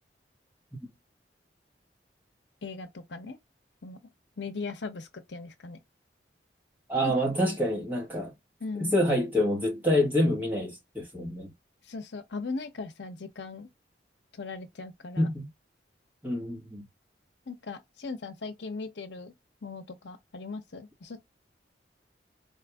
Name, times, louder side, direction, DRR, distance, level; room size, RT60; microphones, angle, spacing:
voice 1, 2.6-3.4 3.8-4.0 4.4-5.8 7.0-7.3 8.6-9.0 11.8-13.7 14.3-15.3 17.5-19.3 19.6-21.2, left 4 dB, 85° left, 0.8 m, -39 dB
voice 2, 6.9-8.3 8.8-11.5 15.2-15.5 16.2-16.8, left 1 dB, 10° right, 1.3 m, -27 dB
4.3 x 2.5 x 2.2 m
head